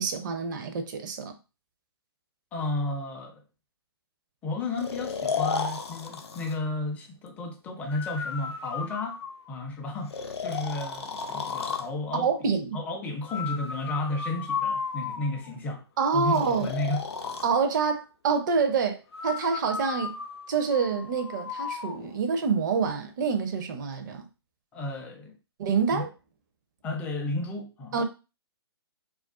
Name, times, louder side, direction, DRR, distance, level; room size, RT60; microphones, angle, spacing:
voice 1, 0.0-1.3 12.2-12.8 16.0-16.7 17.4-20.2 20.5-24.3 25.6-26.1 27.9-28.0, right 5 dB, 45° right, 0.5 m, -27 dB
voice 2, 2.5-3.4 4.4-9.2 9.5-12.3 12.7-15.8 16.1-17.1 24.7-25.3 25.9-26.1 26.8-28.0, left 2 dB, 10° left, 0.4 m, -32 dB
Breathing, 4.8-6.6 7.9-9.6 10.1-11.9 13.3-15.5 16.3-17.5 19.1-22.0, left 5 dB, 75° left, 0.5 m, -34 dB
2.4 x 2.3 x 2.3 m
figure-of-eight pair, 130°, 14 cm